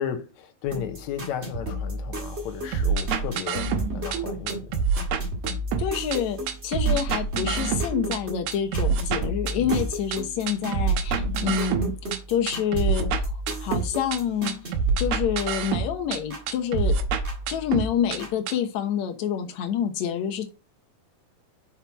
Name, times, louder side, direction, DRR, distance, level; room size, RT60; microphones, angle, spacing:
voice 1, 0.0-4.7 9.6-9.7, left 9 dB, 85° left, 1.6 m, -34 dB
sound 1, 0.7-16.5 16.8-18.3, equal, 30° right, 1.3 m, -34 dB
sound 2, 2.7-4.2 4.5-6.2 6.5-8.2 8.5-10.2 10.5-12.2 12.5-14.2 14.5-16.2 16.5-18.2 18.5-18.6, right 6 dB, 90° right, 2.8 m, -26 dB
voice 2, 5.8-13.3 13.6-14.6 15.0-16.9 17.5-20.5, left 8 dB, 65° left, 1.9 m, -27 dB
5.8 x 5.7 x 4.6 m
omnidirectional pair, 4.3 m